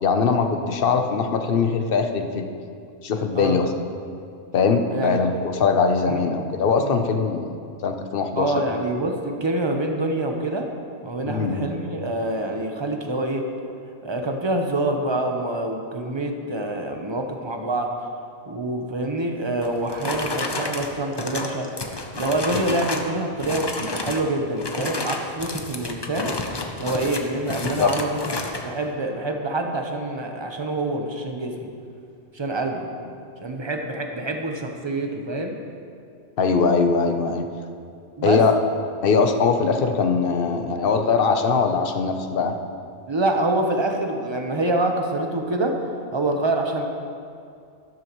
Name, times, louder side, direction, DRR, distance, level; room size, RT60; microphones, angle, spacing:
voice 1, 0.0-2.5 3.0-3.7 4.5-7.6 7.8-8.5 11.2-11.7 22.7-22.8 27.6-27.9 36.4-37.5 38.2-38.5 39.0-42.5, left 5 dB, 50° left, 6 dB, 0.9 m, -21 dB
voice 2, 6.1-6.5 6.8-7.0 8.4-10.7 11.0-13.4 14.0-17.9 18.5-21.7 22.1-26.3 26.8-28.2 28.6-31.7 32.3-32.9 33.4-35.5 38.2-38.4 43.1-45.7 46.1-46.9, right 2 dB, 25° right, 3 dB, 0.9 m, -26 dB
sound 1, 19.6-23.1 23.4-24.3 24.6-28.6, left 2 dB, 25° left, 0.5 m, -30 dB
13.5 x 12.5 x 3.1 m, 2.4 s
omnidirectional pair, 1.4 m